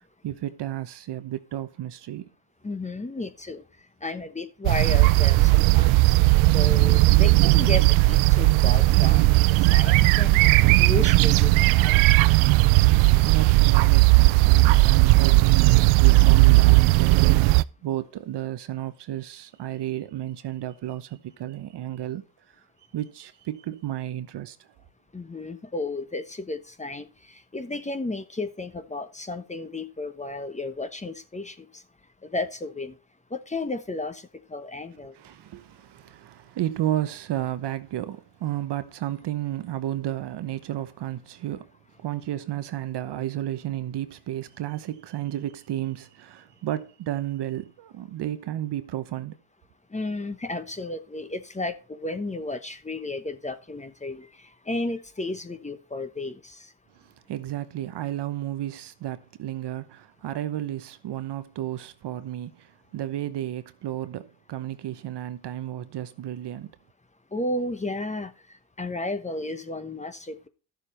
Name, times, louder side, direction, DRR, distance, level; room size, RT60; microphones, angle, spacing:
voice 1, 0.0-2.3 13.2-17.3 17.8-22.2 22.9-24.6 35.1-41.7 42.0-49.4 57.3-66.7, right 13 dB, 60° right, 1.0 m, -32 dB
voice 2, 2.6-3.6 4.0-6.1 6.5-10.4 10.8-12.2 25.1-31.8 32.2-33.0 33.3-35.1 49.9-56.7 67.3-68.3 68.8-70.5, left 2 dB, 15° left, 1.1 m, -33 dB
sound 1, 4.6-17.6, right 21 dB, 85° right, 0.5 m, -17 dB
12.0 x 7.1 x 4.3 m
cardioid pair, 85°, 47 cm